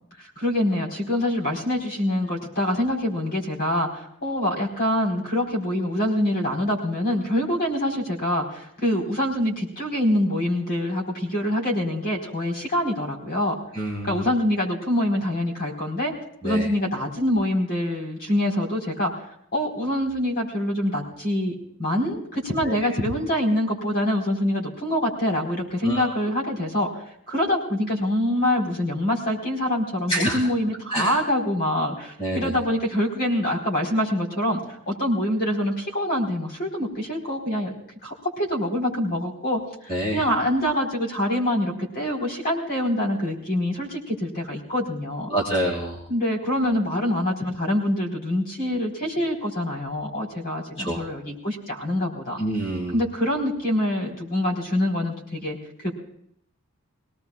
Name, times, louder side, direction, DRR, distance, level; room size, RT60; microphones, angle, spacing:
voice 1, 0.2-13.6 14.1-16.1 16.4-19.1 19.5-26.9 27.3-34.6 34.9-37.7 38.0-45.3 46.1-52.4 52.9-55.9, left 1 dB, 45° left, -1 dB, 4.4 m, -25 dB
voice 2, 13.7-14.2 16.4-16.7 22.6-22.7 25.8-26.0 30.1-30.4 30.9-31.1 32.2-32.5 39.9-40.2 45.3-46.0 50.8-51.0 52.4-53.0, right 1 dB, 25° left, -4 dB, 2.3 m, -26 dB
23.5 x 18.5 x 2.4 m, 0.69 s
head